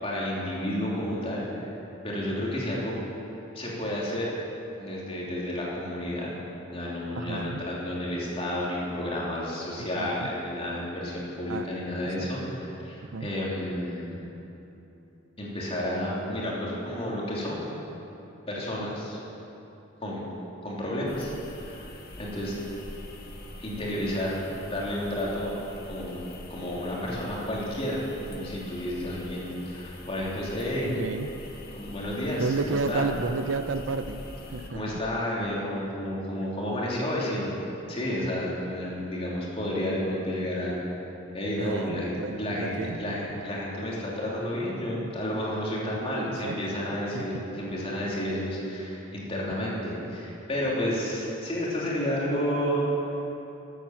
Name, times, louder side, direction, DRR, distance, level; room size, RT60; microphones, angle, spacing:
voice 1, 0.0-1.7 2.0-2.9 3.5-4.3 4.8-6.3 6.6-14.2 15.4-17.6 18.5-19.2 20.0-20.3 20.6-21.3 21.6-21.9 22.2-22.5 23.6-24.3 24.6-25.5 25.9-28.0 28.3-30.9 31.7-33.0 34.7-37.6 37.9-41.0 41.3-42.1 42.4-42.7 43.0-52.9, left 1 dB, 30° left, -5 dB, 3.1 m, -31 dB
voice 2, 7.2-7.6 10.0-10.3 11.5-11.7 12.1-12.5 13.0-13.3 30.9-31.3 32.4-34.2 34.5-35.0 41.6-43.4 45.8-46.8 47.1-47.6, right 4 dB, 70° right, 10 dB, 0.6 m, -32 dB
sound 1, 21.1-34.7, left 1 dB, 50° left, 1.7 m, -44 dB
13.5 x 8.9 x 7.5 m, 3.0 s
head